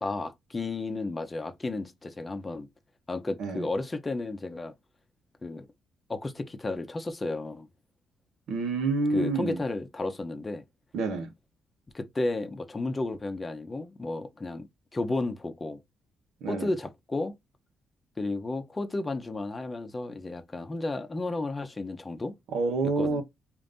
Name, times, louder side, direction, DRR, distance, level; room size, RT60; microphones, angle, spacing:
voice 1, 0.0-2.7 3.1-4.7 5.4-5.7 6.1-7.7 9.1-10.6 11.9-14.7 14.9-15.8 16.5-17.3 18.2-22.3 23.0-23.2, left 2 dB, 25° left, 0.7 m, -33 dB
voice 2, 8.5-9.6 10.9-11.3 16.4-16.7 22.5-23.2, right 3 dB, 75° right, 1.0 m, -28 dB
5.1 x 2.6 x 2.6 m
cardioid pair, 90°, 0 cm